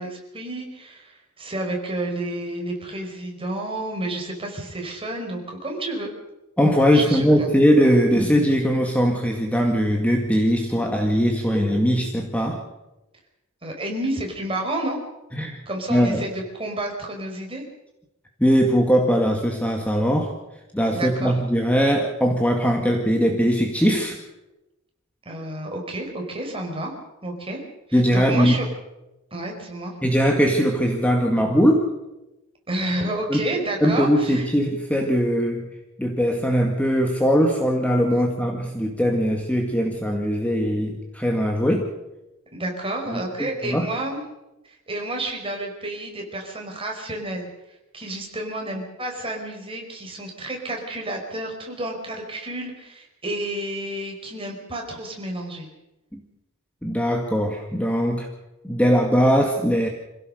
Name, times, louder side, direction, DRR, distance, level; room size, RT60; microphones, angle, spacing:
voice 1, 0.0-6.1 6.9-7.5 13.6-15.0 15.7-17.6 20.9-21.3 25.2-26.9 27.2-27.6 27.9-28.6 29.3-29.9 32.7-34.5 38.1-38.2 42.5-44.2 44.6-47.5 47.9-55.7, right 1 dB, 25° right, 1 dB, 4.8 m, -30 dB
voice 2, 6.6-12.6 15.3-15.6 15.9-16.2 18.4-20.4 20.7-24.2 27.9-28.6 30.0-31.8 33.3-33.4 33.8-35.7 36.0-41.9 43.1-43.9 56.1-56.2 56.8-58.3 58.6-59.9, equal, 5° left, 2 dB, 1.8 m, -20 dB
26.5 x 16.5 x 6.6 m, 0.97 s
head